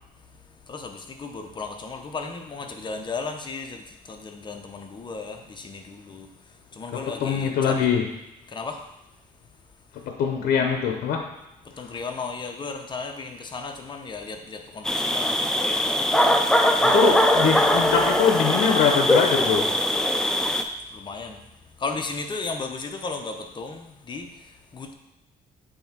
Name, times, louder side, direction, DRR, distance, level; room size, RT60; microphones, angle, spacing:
voice 1, 0.7-6.3 6.7-7.9 8.5-8.9 11.6-16.3 16.7-17.0 20.9-21.4 21.8-24.9, left 4 dB, 30° left, 4 dB, 0.8 m, -35 dB
voice 2, 6.9-8.1 9.9-11.3 11.8-11.9 16.8-19.7, left 7 dB, 75° left, 3 dB, 0.7 m, -23 dB
sound 1, 14.9-20.6, left 1 dB, 5° left, 0.4 m, -21 dB
7.8 x 3.5 x 4.5 m, 0.92 s
cardioid pair, 115°, 16 cm